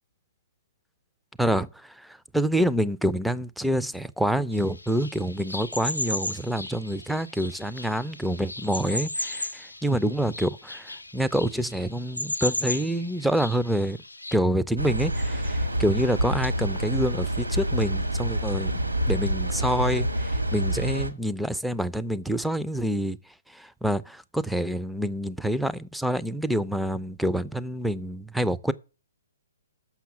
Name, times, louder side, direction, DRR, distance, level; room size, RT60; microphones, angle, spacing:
voice 1, 1.4-14.0 14.3-18.7 19.1-23.2 23.5-28.7, equal, ahead, 0.4 m, -27 dB
sound 1, 4.5-14.4, left 1 dB, 80° left, 0.4 m, -35 dB
sound 2, 14.8-21.1, right 1 dB, 85° right, 1.5 m, -27 dB
7.2 x 5.7 x 7.0 m
figure-of-eight pair, 125°, 0 cm